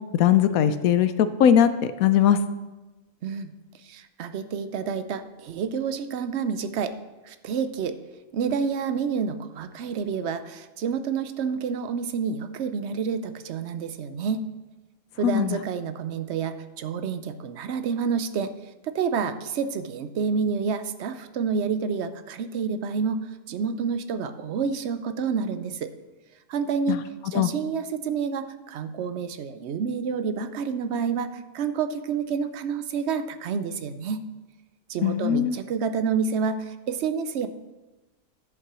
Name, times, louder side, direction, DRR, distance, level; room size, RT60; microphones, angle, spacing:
voice 1, 0.2-2.4 15.2-15.6 26.9-27.0 27.3-27.5 35.0-35.6, left 9 dB, 85° left, 12 dB, 1.0 m, -20 dB
voice 2, 3.2-3.5 3.8-6.9 7.3-8.0 8.3-14.5 15.2-18.5 18.8-25.9 26.5-27.0 27.3-34.3 34.9-37.5, right 6 dB, 60° right, 11 dB, 0.8 m, -29 dB
10.5 x 5.7 x 6.1 m, 1.1 s
omnidirectional pair, 1.4 m